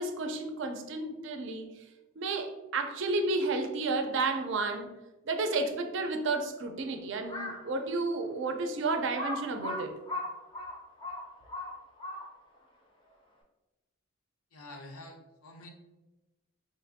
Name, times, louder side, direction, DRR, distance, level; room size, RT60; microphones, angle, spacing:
voice 1, 0.0-1.7 2.2-4.9 5.3-9.9, right 3 dB, 55° right, 5 dB, 0.4 m, -31 dB
Crow, 7.2-7.7 8.3-8.4 9.1-12.5, left 1 dB, 25° left, 0.5 m, -38 dB
voice 2, 14.5-15.7, left 1 dB, 90° left, 3 dB, 0.6 m, -47 dB
3.8 x 2.4 x 2.6 m, 1.1 s
head